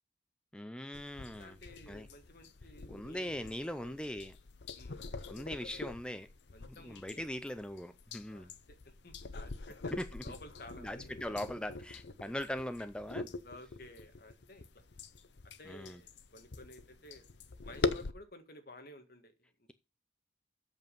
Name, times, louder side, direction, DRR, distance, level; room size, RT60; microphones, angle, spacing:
voice 1, 0.5-1.6 1.9-2.1 2.9-4.3 5.3-6.3 6.7-8.5 9.9-10.2 10.8-13.3 15.7-16.0, left 1 dB, 5° left, 0.5 m, -40 dB
sound 1, 0.9-18.1, left 3 dB, 75° left, 0.8 m, -43 dB
voice 2, 1.2-4.1 4.7-5.0 6.5-7.3 8.2-8.5 8.8-9.8 10.2-11.1 13.4-14.7 15.6-17.3 17.6-19.5, left 1 dB, 55° left, 1.7 m, -54 dB
8.1 x 7.2 x 5.4 m
head